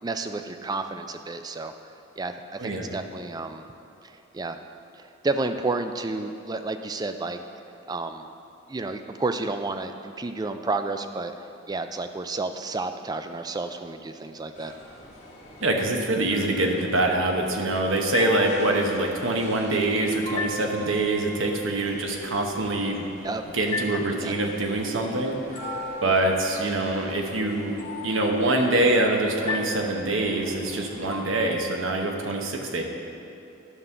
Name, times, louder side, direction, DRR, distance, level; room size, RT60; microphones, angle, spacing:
voice 1, 0.0-1.7 2.2-3.6 4.0-4.6 4.9-7.4 7.9-8.3 8.7-11.3 11.7-14.7 23.2-23.4 24.2-24.3 26.0-26.1, right 3 dB, 20° right, 8 dB, 0.3 m, -31 dB
voice 2, 2.6-2.9 15.6-23.0 23.5-25.7 26.0-27.8 28.0-32.8, right 2 dB, 75° right, 1 dB, 1.0 m, -25 dB
sound 1, 14.6-31.2, left 2 dB, 35° left, 1.1 m, -38 dB
11.0 x 3.7 x 6.7 m, 2.9 s
head